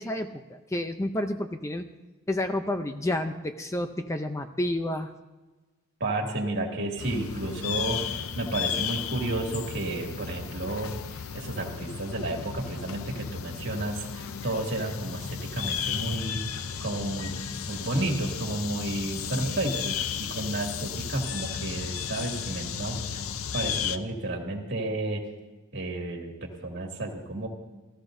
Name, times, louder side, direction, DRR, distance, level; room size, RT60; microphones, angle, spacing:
voice 1, 0.0-1.9 2.3-5.1, left 1 dB, 15° left, 7 dB, 0.5 m, -30 dB
voice 2, 6.0-17.3 17.7-23.2 23.5-25.2 25.7-27.5, right 2 dB, 55° right, 0 dB, 2.4 m, -32 dB
sound 1, 7.0-24.0, left 7 dB, 90° left, 0.6 m, -34 dB
29.0 x 14.0 x 2.7 m, 1.2 s
head